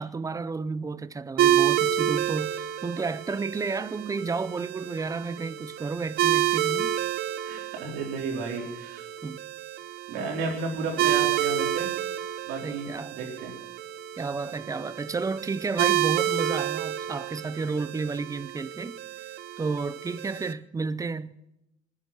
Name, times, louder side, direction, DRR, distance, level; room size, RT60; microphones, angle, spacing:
voice 1, 0.0-7.0 9.2-9.4 12.6-13.3 14.2-21.4, right 4 dB, 20° right, 0.6 m, -32 dB
sound 1, 1.4-20.5, right 12 dB, 70° right, 0.8 m, -29 dB
voice 2, 7.4-9.1 10.1-11.9 12.4-13.5, right 4 dB, 85° right, 4.1 m, -33 dB
19.5 x 9.8 x 6.2 m
cardioid pair, 110°, 17 cm